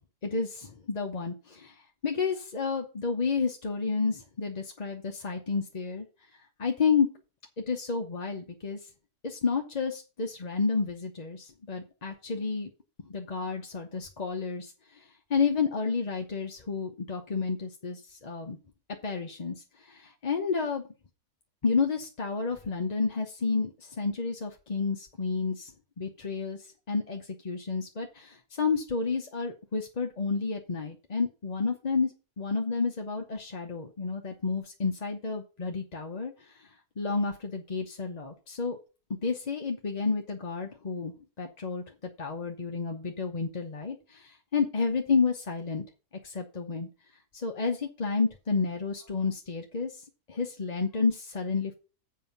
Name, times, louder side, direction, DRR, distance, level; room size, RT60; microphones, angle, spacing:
voice 1, 0.2-6.1 6.6-7.1 7.7-8.8 9.2-12.7 13.1-15.0 15.3-18.6 19.0-20.8 21.6-25.7 26.0-26.6 26.9-36.7 37.0-38.8 39.1-41.8 42.2-45.8 46.2-46.9 47.3-51.7, left 4 dB, 35° left, 2 dB, 0.8 m, -30 dB
7.6 x 5.6 x 7.0 m, 0.34 s
omnidirectional pair, 1.7 m